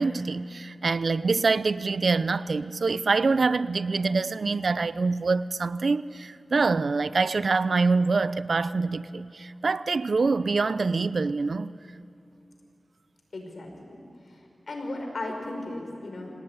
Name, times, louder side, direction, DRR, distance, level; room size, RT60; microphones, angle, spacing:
voice 1, 0.0-11.7, right 4 dB, 70° right, 0.7 m, -25 dB
voice 2, 13.3-14.0 14.3-16.3, left 2 dB, 70° left, 5.3 m, -36 dB
26.5 x 18.0 x 9.6 m
wide cardioid pair, 55°, 0 cm